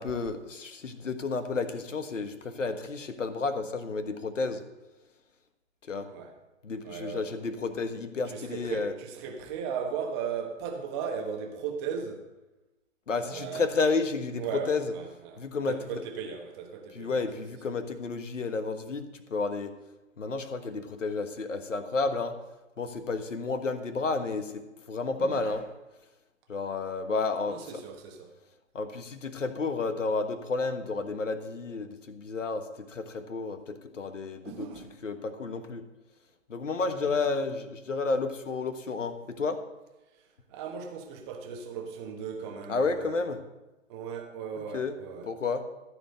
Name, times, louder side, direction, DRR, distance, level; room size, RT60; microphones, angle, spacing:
voice 1, 0.0-4.6 5.9-6.1 6.6-8.9 13.1-14.8 15.4-15.7 16.9-19.7 20.2-22.4 22.8-25.6 26.5-27.6 28.7-34.7 35.0-35.8 36.5-39.6 42.7-43.4 44.7-44.9 45.2-45.6, left 4 dB, 70° left, 1.4 m, -31 dB
voice 2, 6.8-7.3 8.3-12.2 13.2-13.7 14.4-17.2 25.2-25.6 27.5-28.3 34.4-34.9 36.8-37.2 40.1-43.3 43.9-45.3, right 6 dB, 20° right, 1.2 m, -37 dB
14.0 x 4.8 x 7.7 m
figure-of-eight pair, 135°, 39 cm